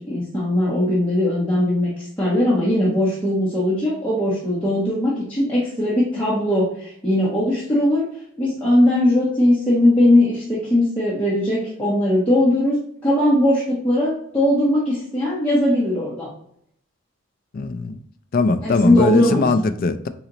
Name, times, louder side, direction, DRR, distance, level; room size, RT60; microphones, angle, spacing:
voice 1, 0.0-8.1 8.4-12.8 13.0-16.3 18.6-19.5, left 1 dB, 5° left, 1.2 m, -19 dB
voice 2, 17.5-18.0 18.3-20.1, left 3 dB, 45° left, 0.4 m, -20 dB
4.1 x 3.9 x 3.0 m
head